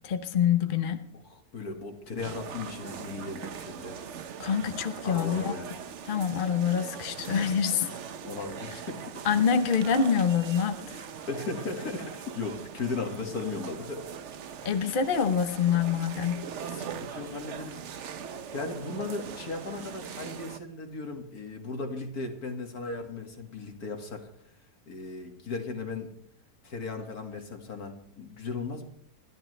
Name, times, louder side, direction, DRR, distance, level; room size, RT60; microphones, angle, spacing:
voice 1, 0.0-1.0 4.4-5.5 6.1-7.9 9.2-11.0 14.6-16.4, left 7 dB, 40° left, 8 dB, 1.0 m, -26 dB
voice 2, 1.3-4.0 5.0-5.7 8.2-9.2 11.3-14.0 16.6-17.8 18.5-24.3 24.9-26.1 26.6-28.8, left 3 dB, 70° left, 4 dB, 2.6 m, -36 dB
sound 1, 2.2-20.6, right 7 dB, 55° right, 1.0 m, -41 dB
28.5 x 11.5 x 3.3 m, 0.63 s
omnidirectional pair, 1.7 m